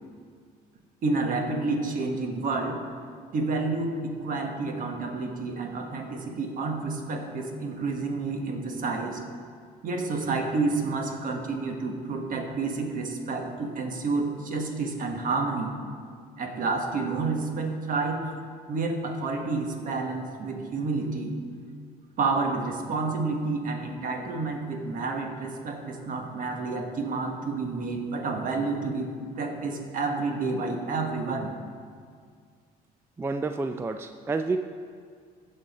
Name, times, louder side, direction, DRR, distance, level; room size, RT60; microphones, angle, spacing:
voice 1, 1.0-2.8 3.3-9.2 9.8-15.8 16.4-18.2 18.7-21.4 22.2-31.5, right 3 dB, 50° right, 3 dB, 1.3 m, -29 dB
voice 2, 33.2-34.6, right 3 dB, 15° right, 7 dB, 0.3 m, -29 dB
15.5 x 5.5 x 4.1 m, 2.1 s
cardioid pair, 110°, 17 cm